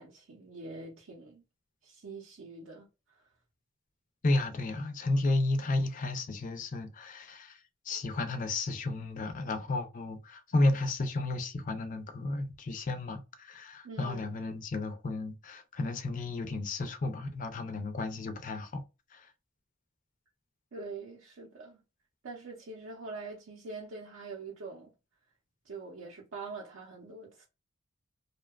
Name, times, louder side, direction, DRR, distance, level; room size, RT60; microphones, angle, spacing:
voice 1, 0.0-1.4 1.8-3.3 13.8-14.4 20.7-21.8 22.2-24.9 25.6-27.5, right 3 dB, 65° right, 0.5 m, -44 dB
voice 2, 4.2-18.8 19.1-19.3, left 2 dB, 40° left, 0.4 m, -32 dB
2.7 x 2.2 x 2.2 m
head